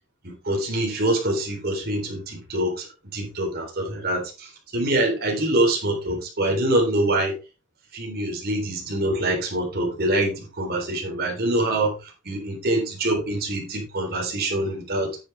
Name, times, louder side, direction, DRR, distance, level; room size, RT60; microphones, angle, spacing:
voice 1, 0.2-7.3 7.9-15.2, right 1 dB, 45° right, 3.8 m, -25 dB
10.0 x 7.8 x 3.5 m
head